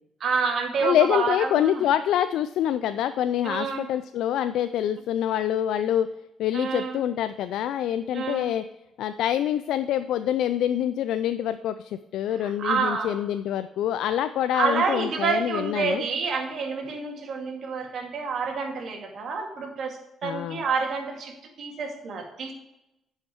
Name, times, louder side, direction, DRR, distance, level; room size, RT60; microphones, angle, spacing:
voice 1, 0.2-1.8 3.4-3.9 6.5-7.0 8.1-8.5 12.4-13.1 14.5-22.5, right 5 dB, 65° right, 2 dB, 2.2 m, -28 dB
voice 2, 0.8-6.1 6.4-8.6 9.0-16.0 20.2-20.6, left 11 dB, 80° left, 12 dB, 0.3 m, -26 dB
9.9 x 5.7 x 4.4 m, 0.91 s
supercardioid pair, 70°, 0 cm